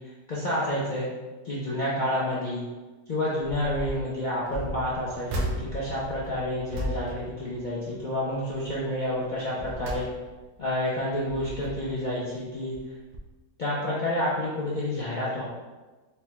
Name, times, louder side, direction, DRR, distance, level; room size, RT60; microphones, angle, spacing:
voice 1, 0.3-1.1 1.4-2.6 3.1-10.1 10.6-12.8 13.6-15.4, left 1 dB, 60° left, -7 dB, 0.5 m, -29 dB
sound 1, 3.5-4.0 4.5-8.1 8.5-8.8 9.3-10.6 11.1-12.1 12.7-12.9 13.1-13.2, equal, 90° right, 1.2 m, -36 dB
4.4 x 2.2 x 3.0 m, 1.2 s
omnidirectional pair, 1.6 m